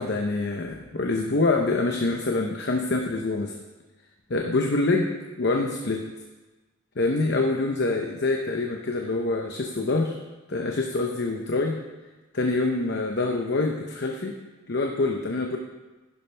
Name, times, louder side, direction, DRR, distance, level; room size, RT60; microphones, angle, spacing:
voice 1, 0.0-3.5 4.3-5.1 5.4-6.0 7.0-10.2 10.5-11.8 12.3-14.3 14.7-15.6, left 2 dB, 55° left, 2 dB, 0.8 m, -25 dB
11.0 x 11.0 x 3.4 m, 1.2 s
head